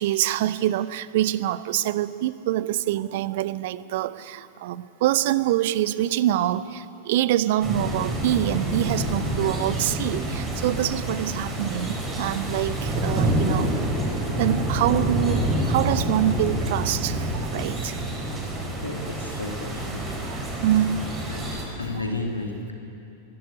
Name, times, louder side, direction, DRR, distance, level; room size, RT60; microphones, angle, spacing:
voice 1, 0.0-13.7 14.4-18.0 20.3-21.0, right 13 dB, 50° right, 16 dB, 0.6 m, -25 dB
sound 1, 7.6-21.6, right 1 dB, 20° right, 4.9 m, -27 dB
voice 2, 18.8-20.2 20.5-20.6 21.3-21.4 21.8-22.7, left 2 dB, 85° left, 1 dB, 2.6 m, -33 dB
23.5 x 12.0 x 9.7 m, 2.7 s
figure-of-eight pair, 90°, 0 cm